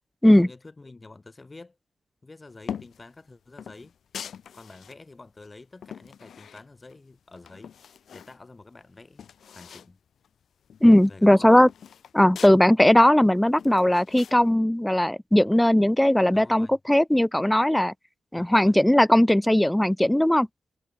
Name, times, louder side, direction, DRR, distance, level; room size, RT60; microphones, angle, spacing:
voice 1, 0.3-1.8 2.2-3.9 4.5-7.7 8.1-9.2 9.5-10.0 11.1-11.6 16.3-16.8 18.3-18.8, left 3 dB, 25° left, 6.4 m, -47 dB
sound 1, 2.6-3.1 3.6-5.0 5.4-7.0 7.3-8.4 8.7-8.8 9.0-9.9 10.2-10.3 10.6-12.6 13.0-14.4, left 8 dB, 75° left, 2.0 m, -42 dB
voice 2, 10.8-11.7 12.1-17.9 18.3-20.5, left 1 dB, 5° left, 0.8 m, -18 dB
cardioid pair, 85°, 0 cm